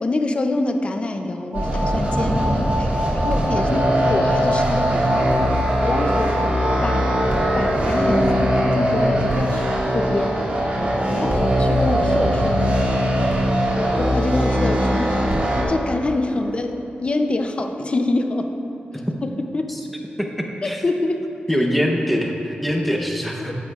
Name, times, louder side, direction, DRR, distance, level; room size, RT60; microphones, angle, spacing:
voice 1, 0.0-5.3 5.8-6.4 6.8-7.2 7.5-10.5 11.1-12.7 13.8-15.3 15.7-18.5 18.9-19.8 20.6-21.3, left 2 dB, 35° left, 6 dB, 0.5 m, -25 dB
sound 1, 1.5-15.6, equal, 45° right, 1.7 m, -20 dB
sound 2, 1.5-7.3, equal, 75° right, 1.3 m, -29 dB
voice 2, 21.5-23.6, equal, ahead, 1 dB, 0.8 m, -22 dB
12.5 x 9.9 x 2.4 m, 3.0 s
wide cardioid pair, 175°, 3 cm